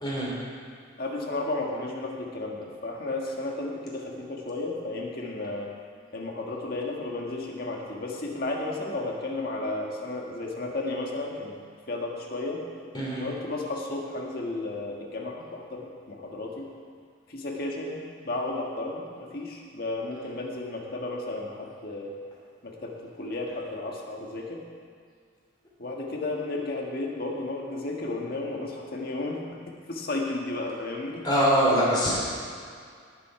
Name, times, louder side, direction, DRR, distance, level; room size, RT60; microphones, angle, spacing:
voice 1, 0.0-0.3 12.9-13.2 31.2-32.2, equal, 25° left, -6 dB, 3.1 m, -23 dB
voice 2, 1.0-5.7 6.1-11.5 11.9-12.6 13.2-16.7 17.3-22.1 22.6-24.6 25.8-29.4 29.9-31.2, left 2 dB, 50° left, -1 dB, 1.7 m, -33 dB
18.0 x 7.5 x 4.8 m, 2.2 s
head